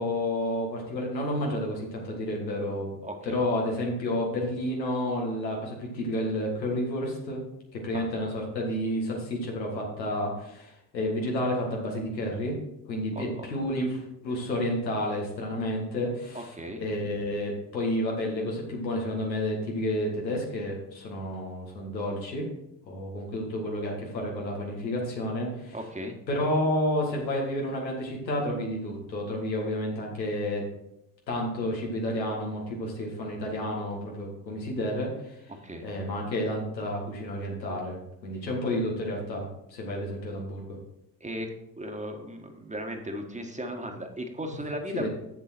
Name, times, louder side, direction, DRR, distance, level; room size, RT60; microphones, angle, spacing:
voice 1, 0.0-2.9 3.2-7.4 7.7-12.6 12.9-16.4 16.8-22.5 22.8-25.8 26.3-30.7 31.3-35.4 35.8-38.0 38.2-40.6 44.5-44.6 44.9-45.1, left 1 dB, 90° left, -1 dB, 1.9 m, -30 dB
voice 2, 3.0-3.4 7.9-8.1 13.1-13.5 16.3-16.8 25.7-26.2 35.5-35.8 41.2-41.5 41.8-45.1, equal, 15° right, 4 dB, 1.5 m, -36 dB
7.8 x 7.0 x 4.4 m, 0.82 s
hypercardioid pair, 55°, 50 cm